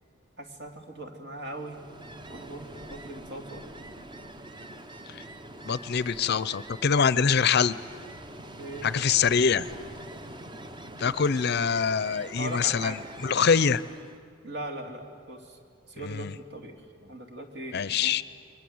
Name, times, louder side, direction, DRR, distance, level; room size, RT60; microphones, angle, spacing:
voice 1, 0.4-1.8 2.3-3.6 8.5-8.9 12.4-13.1 14.4-15.6 15.9-18.2, right 1 dB, 60° right, 3 dB, 3.0 m, -40 dB
Ocean, 1.4-14.2, right 1 dB, 25° right, 0.8 m, -45 dB
voice 2, 5.6-7.8 8.8-9.7 11.0-13.8 16.0-16.3 17.7-18.2, left 6 dB, 55° left, 17 dB, 0.6 m, -24 dB
29.5 x 23.0 x 7.9 m, 2.4 s
head